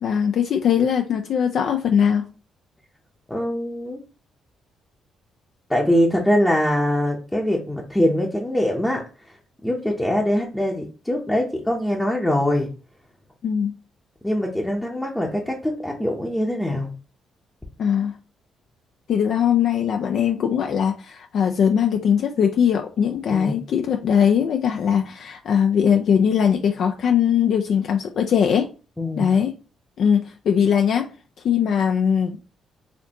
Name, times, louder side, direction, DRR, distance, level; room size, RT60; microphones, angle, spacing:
voice 1, 0.0-2.3 13.4-13.8 17.8-18.2 19.1-28.7 29.2-29.5 30.0-31.1 31.4-32.4, left 8 dB, 65° left, 0.4 m, -20 dB
voice 2, 3.3-4.0 5.7-9.4 9.6-12.7 14.2-16.9 23.3-23.6 29.0-29.3, left 1 dB, 10° left, 0.7 m, -23 dB
4.2 x 2.6 x 2.9 m
cardioid pair, 90°, 0 cm